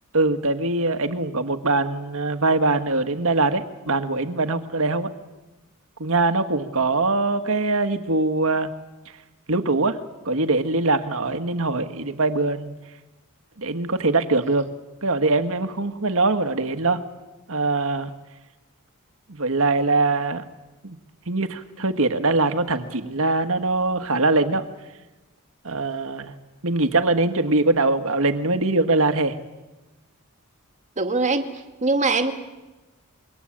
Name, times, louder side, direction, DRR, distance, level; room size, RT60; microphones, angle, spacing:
voice 1, 0.1-5.1 6.0-8.7 9.5-10.0 10.3-12.7 13.6-14.7 15.0-17.0 17.5-18.1 19.3-20.4 20.8-21.0 21.3-24.7 25.6-26.3 26.6-29.4, right 3 dB, 65° right, 9 dB, 1.8 m, -22 dB
voice 2, 31.0-32.3, right 3 dB, 35° right, 7 dB, 2.1 m, -22 dB
26.5 x 23.5 x 8.8 m, 1.1 s
head